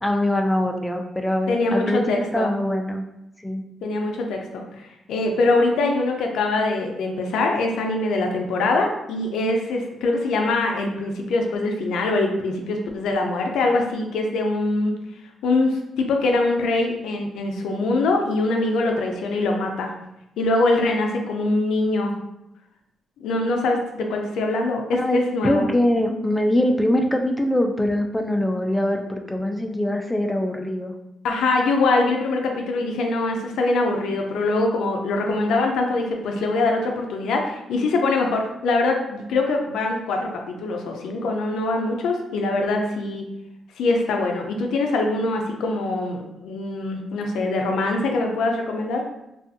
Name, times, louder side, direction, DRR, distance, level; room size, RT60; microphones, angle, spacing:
voice 1, 0.0-3.0 3.4-3.6 24.9-30.9, left 1 dB, 10° left, 3 dB, 0.3 m, -23 dB
voice 2, 1.5-2.5 3.8-4.6 5.1-14.9 15.4-19.9 20.4-22.1 23.2-25.7 31.2-43.2 43.8-49.0, left 2 dB, 85° left, 2 dB, 0.4 m, -23 dB
2.6 x 2.4 x 2.5 m, 0.88 s
cardioid pair, 80°, 0 cm